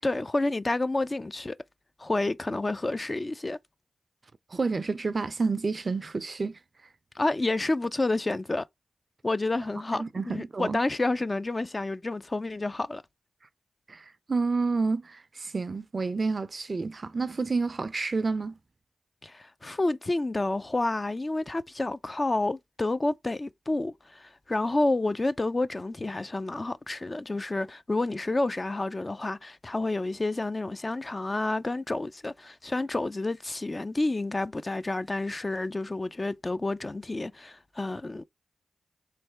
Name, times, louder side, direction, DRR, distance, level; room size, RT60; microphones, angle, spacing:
voice 1, 0.0-1.6 2.0-3.6 7.2-8.6 9.2-13.0 19.2-38.2, left 2 dB, 35° left, 0.4 m, -29 dB
voice 2, 4.5-6.6 9.9-10.8 13.9-18.6, right 4 dB, 50° right, 0.4 m, -29 dB
3.5 x 3.3 x 4.5 m
cardioid pair, 45°, 0 cm